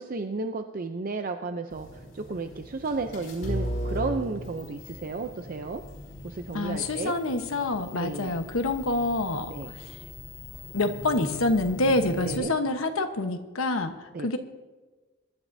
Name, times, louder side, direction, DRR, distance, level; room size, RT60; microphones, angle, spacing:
voice 1, 0.0-1.9 2.1-5.8 6.2-7.2 7.9-8.3 9.5-9.7 12.2-12.5 14.1-14.3, right 3 dB, 45° right, 7 dB, 0.6 m, -33 dB
sound 1, 1.7-12.4, equal, 65° left, 4.7 m, -38 dB
voice 2, 6.5-10.0 10.7-14.4, left 2 dB, 90° left, 6 dB, 1.2 m, -27 dB
22.5 x 12.5 x 2.7 m, 1.2 s
head